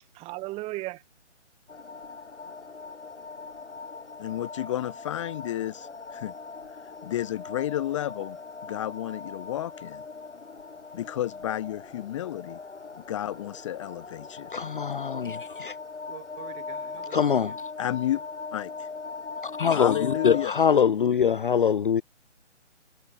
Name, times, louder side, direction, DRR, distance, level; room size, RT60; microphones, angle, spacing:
voice 1, 0.1-1.0 16.1-17.5, right 20 dB, 15° right, 4.7 m, -38 dB
sound 1, 1.7-20.5, left 4 dB, 70° left, 7.1 m, -40 dB
voice 2, 4.2-6.3 7.0-8.4 8.6-10.0 10.9-12.6 13.1-14.5 17.8-18.2 18.5-18.9 19.6-20.6, left 12 dB, 25° left, 1.3 m, -31 dB
voice 3, 14.5-15.7 17.1-17.5 19.6-22.0, left 7 dB, 45° left, 0.5 m, -23 dB
figure-of-eight pair, 145°, 36 cm